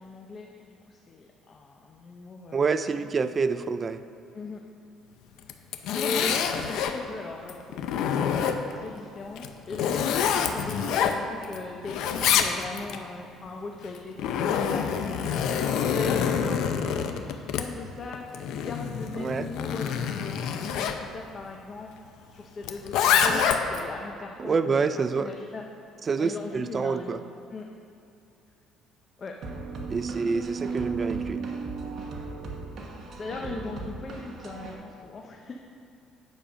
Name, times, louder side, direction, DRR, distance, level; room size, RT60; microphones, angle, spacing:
voice 1, 0.0-2.7 3.0-3.1 4.3-4.6 5.9-8.4 8.7-21.9 22.3-24.7 25.2-25.6 26.2-27.2 27.5-27.7 29.2-29.3 33.1-35.7, left 3 dB, 30° left, 1 dB, 0.7 m, -39 dB
voice 2, 2.5-4.0 19.2-19.4 24.4-25.3 26.1-27.2 29.9-31.4, right 5 dB, 25° right, 11 dB, 0.4 m, -27 dB
Zipper (clothing), 5.4-7.0 7.5-8.8 9.4-11.6 11.8-13.0 13.9-21.0 22.6-23.9, left 7 dB, 70° left, 0.6 m, -26 dB
sound 1, 29.4-34.7, right 4 dB, 45° right, 1.2 m, -35 dB
9.5 x 6.9 x 5.0 m, 2.6 s
cardioid pair, 140°, 0 cm